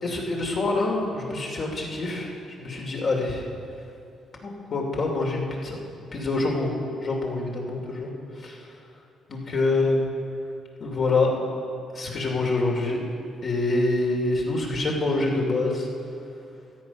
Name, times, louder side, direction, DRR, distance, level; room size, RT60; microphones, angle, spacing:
voice 1, 0.0-2.3 2.6-3.4 4.4-5.8 6.1-8.1 8.4-8.6 9.3-10.1 10.8-11.4 11.9-13.0 13.4-15.9, left 2 dB, 50° left, -1 dB, 2.7 m, -26 dB
14.0 x 9.0 x 5.9 m, 2.5 s
cardioid pair, 90°, 0 cm